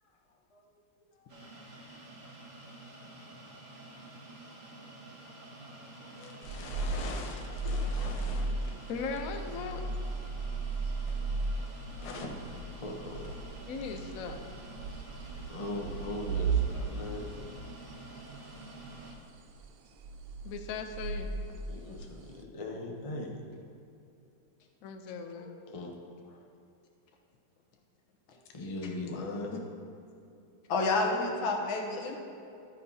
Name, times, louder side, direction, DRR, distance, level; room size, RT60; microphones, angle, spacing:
voice 1, 0.3-0.7 1.0-1.5 5.2-8.9 11.1-11.2 11.9-13.4 15.5-17.4 21.7-23.4 25.2-26.5 28.3-29.5, left 2 dB, 45° left, 1 dB, 0.4 m, -41 dB
sound 1, 1.3-19.1, right 2 dB, 40° right, 1.9 m, -49 dB
sound 2, 6.4-17.9 18.2-18.4 18.7-19.7 20.0-22.3, right 3 dB, 90° right, 1.4 m, -36 dB
voice 2, 8.9-9.8 13.7-14.4 20.4-21.3 24.8-25.6, left 5 dB, 65° left, 5 dB, 0.9 m, -38 dB
voice 3, 30.7-32.2, left 3 dB, 80° left, 2 dB, 1.8 m, -29 dB
12.0 x 9.5 x 2.8 m, 2.7 s
omnidirectional pair, 2.2 m